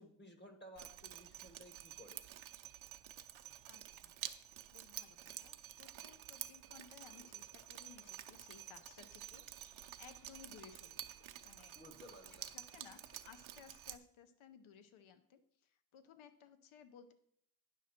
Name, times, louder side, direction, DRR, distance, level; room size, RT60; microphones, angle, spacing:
voice 1, 0.0-2.3 11.7-12.5, equal, 25° left, 6 dB, 0.8 m, -57 dB
Drip, 0.8-14.0, right 12 dB, 75° right, 0.7 m, -50 dB
voice 2, 3.7-4.2 4.7-11.1 11.4-11.8 12.5-17.1, left 7 dB, 80° left, 11 dB, 0.8 m, -60 dB
sound 1, 6.7-13.9, left 7 dB, 45° left, 0.5 m, -71 dB
10.0 x 6.1 x 4.3 m, 0.67 s
wide cardioid pair, 160°, 47 cm